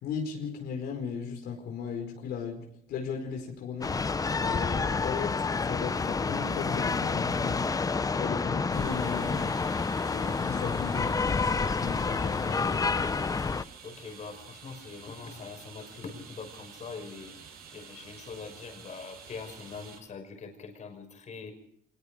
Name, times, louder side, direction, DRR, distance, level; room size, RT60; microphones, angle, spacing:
voice 1, 0.0-4.1 4.4-7.7 8.1-9.5 10.1-13.1, left 6 dB, 75° left, 2 dB, 4.8 m, -36 dB
sound 1, 3.8-13.6, left 4 dB, 20° left, 0.8 m, -29 dB
sound 2, 8.7-20.0, right 6 dB, 65° right, 7.1 m, -49 dB
voice 2, 13.8-21.5, left 5 dB, 45° left, 5 dB, 5.7 m, -43 dB
25.0 x 20.5 x 5.2 m, 0.67 s
cardioid pair, 110°, 17 cm